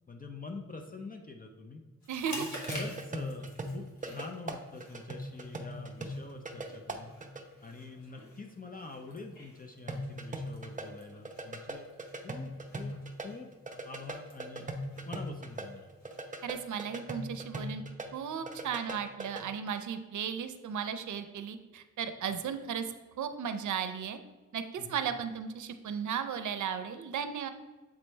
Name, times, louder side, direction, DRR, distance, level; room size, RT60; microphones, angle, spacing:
voice 1, 0.1-1.8 2.3-7.1 7.6-11.9 12.2-12.9 13.2-13.5 13.8-14.7 15.1-15.9 24.8-25.0, left 3 dB, 30° left, 3 dB, 0.5 m, -45 dB
Chewing mastication, 2.0-16.6, left 1 dB, 70° left, 1.5 m, -50 dB
voice 2, 2.1-2.5 16.4-17.8 18.1-22.8 23.2-24.2 24.5-27.5, right 7 dB, 80° right, 10 dB, 0.5 m, -35 dB
sound 1, 2.4-7.4 9.9-13.3 13.5-18.1 18.3-19.4, right 1 dB, 25° right, 0.6 m, -39 dB
7.2 x 3.2 x 4.4 m, 1.3 s
wide cardioid pair, 100°, 29 cm